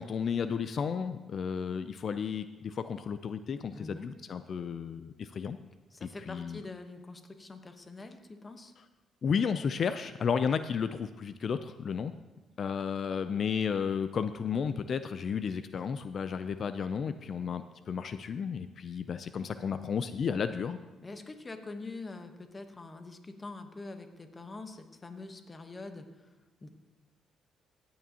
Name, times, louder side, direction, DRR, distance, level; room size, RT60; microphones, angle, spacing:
voice 1, 0.0-5.6 6.0-6.6 9.2-12.1 12.6-20.8, left 6 dB, 55° left, 11 dB, 0.4 m, -33 dB
voice 2, 3.7-4.1 5.9-8.7 21.0-26.1 26.6-26.7, left 3 dB, 25° left, 7 dB, 1.0 m, -44 dB
16.5 x 8.6 x 2.8 m, 1.1 s
cardioid pair, 90°, 0 cm